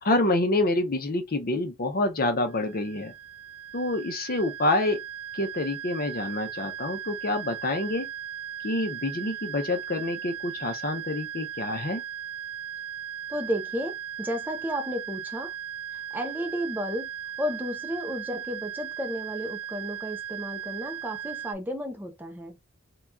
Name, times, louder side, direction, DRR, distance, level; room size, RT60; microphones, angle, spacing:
voice 1, 0.0-3.1 3.7-5.0 5.3-8.1 8.6-12.0, left 2 dB, 40° left, 0.6 m, -27 dB
sound 1, 2.5-21.5, right 10 dB, 70° right, 0.5 m, -38 dB
voice 2, 13.3-15.5 16.1-17.1 17.4-22.6, equal, 10° right, 0.5 m, -32 dB
2.8 x 2.3 x 3.5 m
head